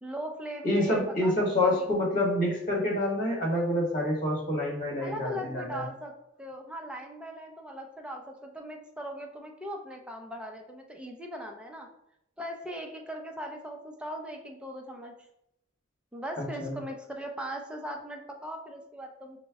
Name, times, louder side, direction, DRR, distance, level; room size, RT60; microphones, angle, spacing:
voice 1, 0.0-1.3 1.6-1.9 5.0-6.1 6.4-11.9 12.4-15.1 16.1-19.4, equal, 5° right, 1 dB, 0.5 m, -39 dB
voice 2, 0.6-5.8 16.4-16.8, left 1 dB, 45° left, -3 dB, 1.4 m, -27 dB
5.1 x 2.1 x 3.4 m, 0.80 s
head